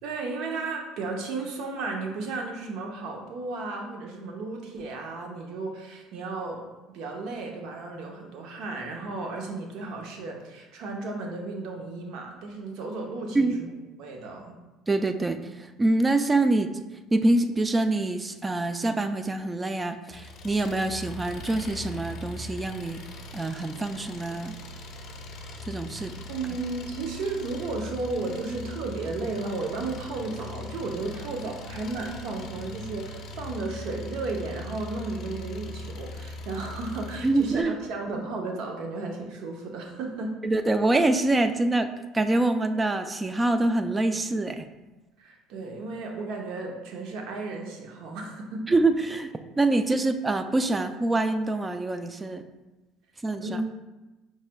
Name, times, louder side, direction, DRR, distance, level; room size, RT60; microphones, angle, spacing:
voice 1, 0.0-13.7 14.0-14.6 26.3-40.4 45.2-48.6 53.4-53.6, right 3 dB, 70° right, 1 dB, 0.7 m, -34 dB
voice 2, 14.9-15.4 15.8-16.7 17.1-23.0 23.3-24.6 25.7-26.1 37.2-37.7 40.4-44.6 48.7-52.4 53.2-53.5, right 2 dB, 15° right, 9 dB, 0.3 m, -25 dB
Engine, 20.1-37.6, left 2 dB, 50° left, 0.6 m, -40 dB
5.5 x 3.1 x 2.2 m, 1.1 s
supercardioid pair, 105°, 0 cm